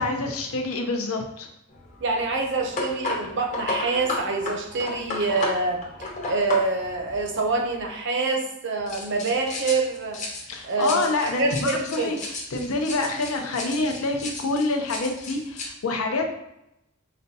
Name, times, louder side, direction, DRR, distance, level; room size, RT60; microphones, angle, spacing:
voice 1, 0.0-1.5 10.5-16.3, left 3 dB, 80° left, 3 dB, 0.6 m, -27 dB
sound 1, 1.7-7.9 8.9-15.7, left 2 dB, 35° left, 0.8 m, -34 dB
voice 2, 2.0-10.2 10.6-12.1, right 3 dB, 60° right, 3 dB, 0.6 m, -26 dB
5.0 x 2.2 x 2.7 m, 0.83 s
head